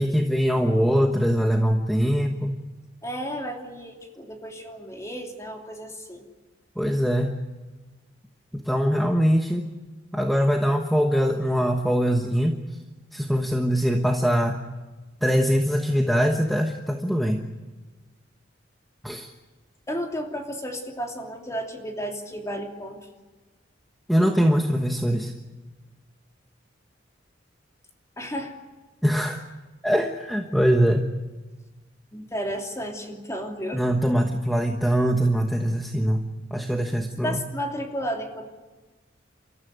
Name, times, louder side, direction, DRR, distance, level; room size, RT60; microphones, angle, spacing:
voice 1, 0.0-2.6 6.8-7.4 8.5-9.7 10.1-12.5 13.1-14.6 15.2-17.4 19.0-19.3 24.1-25.3 29.0-29.4 29.8-31.0 33.7-36.2 36.5-37.4, equal, ahead, 3 dB, 1.2 m, -22 dB
voice 2, 3.0-6.3 19.9-23.0 28.2-28.5 32.1-33.8 37.2-38.4, equal, 15° left, 2 dB, 3.0 m, -33 dB
29.5 x 14.0 x 9.6 m, 1.3 s
head